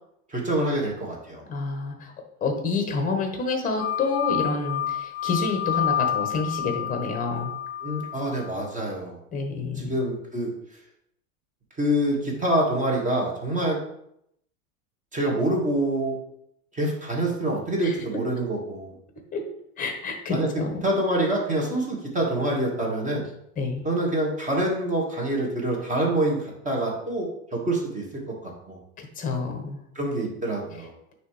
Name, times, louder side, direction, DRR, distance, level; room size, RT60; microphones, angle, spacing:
voice 1, 0.3-1.4 7.8-9.2 9.8-10.5 11.8-13.8 15.1-16.2 16.7-18.9 20.3-20.5 20.8-23.2 23.8-28.0 28.4-28.8 30.0-30.9, right 1 dB, 15° right, -1 dB, 1.7 m, -26 dB
voice 2, 1.5-2.1 2.4-7.5 9.3-9.9 17.8-18.0 19.3-19.5 19.8-20.8 23.6-23.8 29.0-29.8, left 3 dB, 15° left, 4 dB, 1.2 m, -28 dB
sound 1, 3.8-8.6, left 10 dB, 50° left, 0.8 m, -29 dB
9.2 x 3.1 x 3.2 m, 0.75 s
hypercardioid pair, 100°, 46 cm